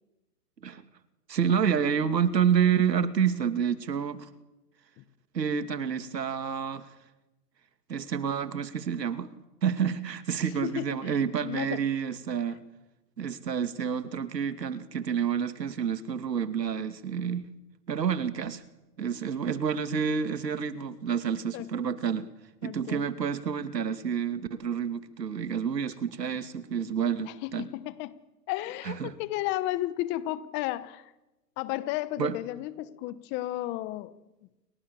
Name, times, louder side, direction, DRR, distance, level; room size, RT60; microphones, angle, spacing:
voice 1, 1.3-4.3 5.3-6.9 7.9-9.4 9.6-12.6 13.2-17.5 17.9-18.6 19.0-22.3 22.6-27.7 28.8-29.1 32.2-32.4, right 7 dB, 80° right, 2.6 m, -29 dB
voice 2, 10.6-11.8 21.5-21.7 22.6-23.0 27.2-28.1 28.5-31.1 31.6-34.2, left 15 dB, 20° left, 1.1 m, -33 dB
29.5 x 24.5 x 7.0 m
hypercardioid pair, 140°, 49 cm